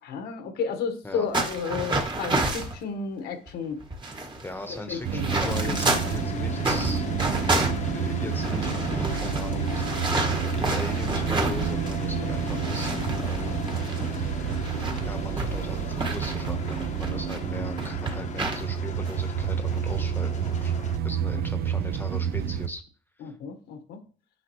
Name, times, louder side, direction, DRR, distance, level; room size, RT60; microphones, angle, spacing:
voice 1, 0.0-3.8 4.9-5.2 5.6-5.8 21.2-21.4 23.2-24.0, left 5 dB, 80° left, 7 dB, 1.3 m, -32 dB
sound 1, 1.3-2.8 3.5-3.6 3.8-6.2 6.6-12.0 12.3-17.4 17.8-18.6 19.0-19.2 19.7-20.0, right 2 dB, 25° right, 1.7 m, -30 dB
voice 2, 4.4-7.0 7.9-13.6 15.0-20.7 21.0-22.8 23.2-23.3, left 1 dB, 10° left, 6 dB, 1.1 m, -39 dB
sound 2, 5.0-22.7, right 9 dB, 65° right, 0.7 m, -29 dB
sound 3, 5.3-21.0, left 7 dB, 45° left, 0.9 m, -37 dB
9.8 x 5.8 x 3.1 m, 0.40 s
cardioid pair, 110°, 17 cm